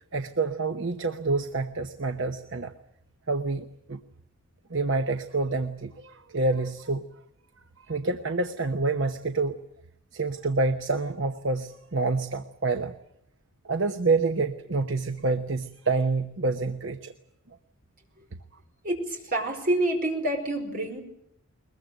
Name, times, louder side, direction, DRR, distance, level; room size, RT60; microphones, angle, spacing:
voice 1, 0.1-2.7 3.3-4.0 4.7-7.0 7.9-9.6 10.1-12.9 13.6-17.1, right 3 dB, 60° right, 7 dB, 1.0 m, -27 dB
voice 2, 18.8-21.0, right 1 dB, 40° right, 3 dB, 5.1 m, -27 dB
21.5 x 21.5 x 9.0 m, 0.76 s
head